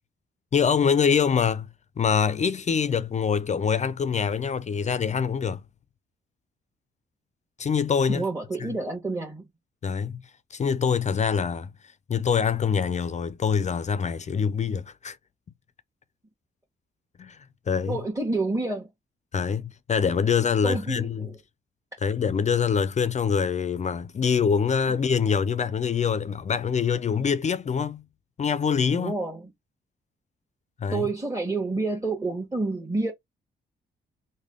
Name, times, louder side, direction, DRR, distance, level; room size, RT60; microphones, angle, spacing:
voice 1, 0.5-1.7 2.0-5.6 7.6-8.2 8.6-8.7 9.8-10.2 10.5-11.7 12.1-15.2 17.2-17.4 17.7-18.0 19.3-21.3 22.0-28.0 28.4-29.1 30.8-31.1, left 6 dB, 35° left, 0.4 m, -24 dB
voice 2, 8.1-9.5 17.9-18.9 20.6-21.4 24.9-25.0 28.9-29.5 30.9-33.1, right 3 dB, 15° right, 1.3 m, -29 dB
3.3 x 2.2 x 3.6 m
cardioid pair, 70°, 21 cm